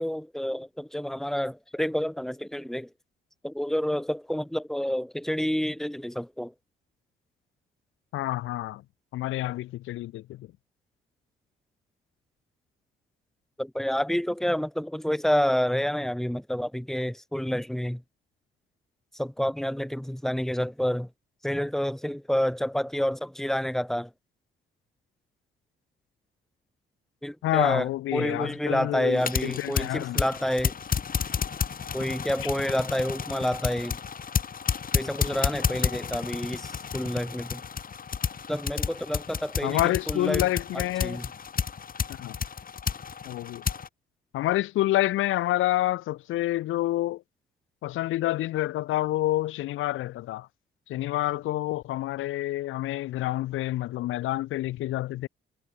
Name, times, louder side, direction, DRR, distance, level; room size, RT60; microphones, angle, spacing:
voice 1, 0.0-2.9 3.4-6.5 13.6-18.0 19.2-21.1 21.4-24.1 27.2-30.8 31.9-34.0 34.9-37.6 38.5-40.5 40.7-41.3, equal, ahead, 3.9 m, -29 dB
voice 2, 8.1-8.8 9.1-10.5 27.4-30.2 39.6-41.2 42.1-42.4 43.2-43.6 44.3-47.2 47.8-50.5 50.9-55.3, left 15 dB, 90° left, 5.1 m, -28 dB
sound 1, 29.1-43.9, left 6 dB, 45° left, 5.9 m, -31 dB
cardioid pair, 90°, 20 cm